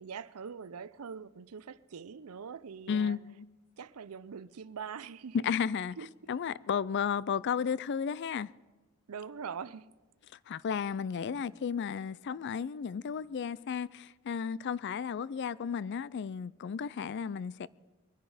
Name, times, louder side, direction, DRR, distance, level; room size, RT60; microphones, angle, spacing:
voice 1, 0.0-3.2 3.8-5.4 6.0-6.3 9.1-9.9, right 6 dB, 80° right, 0.5 m, -43 dB
voice 2, 2.9-3.4 5.4-6.0 6.3-8.5 10.5-17.7, left 7 dB, 50° left, 0.4 m, -33 dB
22.5 x 10.5 x 4.9 m
head